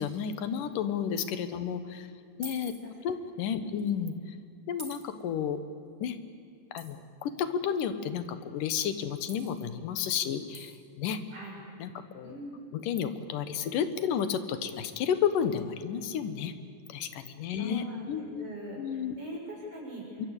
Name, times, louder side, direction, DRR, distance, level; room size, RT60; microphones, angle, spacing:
voice 1, 0.0-2.1 2.4-2.7 3.0-4.1 4.7-5.6 6.0-6.2 6.7-11.2 11.8-12.4 12.7-16.5 16.9-18.5 18.8-19.2 20.2-20.3, left 8 dB, 85° left, 11 dB, 2.9 m, -32 dB
sound 1, 2.4-2.8 3.8-3.9 4.8-5.0 6.8-6.9 9.3-9.6 10.5-10.8, right 1 dB, 10° right, 2.2 m, -46 dB
voice 2, 12.2-12.6 15.6-15.7 17.6-20.3, right 1 dB, 45° right, -3 dB, 7.0 m, -43 dB
25.5 x 23.0 x 8.3 m, 2.4 s
omnidirectional pair, 3.7 m